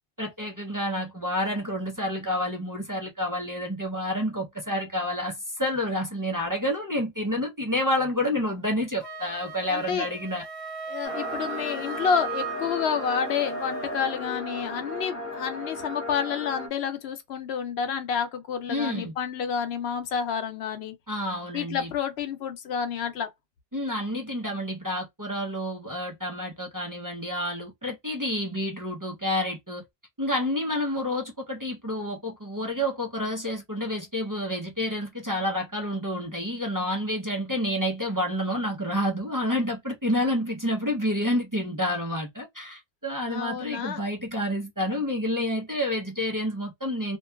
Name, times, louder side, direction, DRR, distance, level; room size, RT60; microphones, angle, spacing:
voice 1, 0.2-10.4 18.7-19.1 21.1-21.9 23.7-29.8 30.2-47.2, left 1 dB, 25° right, 0.5 m, -29 dB
Wind instrument woodwind instrument, 9.0-14.2, right 5 dB, 65° right, 1.1 m, -37 dB
voice 2, 9.7-10.1 10.9-20.9 21.5-23.3 43.3-44.0, left 7 dB, 80° left, 0.9 m, -29 dB
sound 1, 11.0-16.7, left 2 dB, 15° left, 0.6 m, -36 dB
2.7 x 2.2 x 2.2 m
omnidirectional pair, 1.0 m